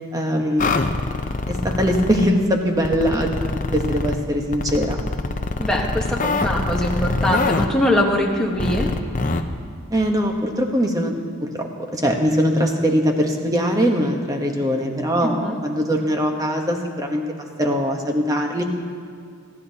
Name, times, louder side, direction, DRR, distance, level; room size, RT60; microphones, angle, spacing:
voice 1, 0.1-0.8 1.5-5.0 9.9-11.1 11.4-17.2 17.6-18.6, equal, 15° right, 2 dB, 1.0 m, -21 dB
sound 1, 0.6-2.3 2.8-4.2 4.5-7.7 8.6-9.4, left 3 dB, 35° left, 0.6 m, -24 dB
voice 2, 5.6-8.9 15.4-15.6, left 1 dB, 5° left, -1 dB, 1.2 m, -22 dB
29.5 x 10.5 x 2.8 m, 2.3 s
head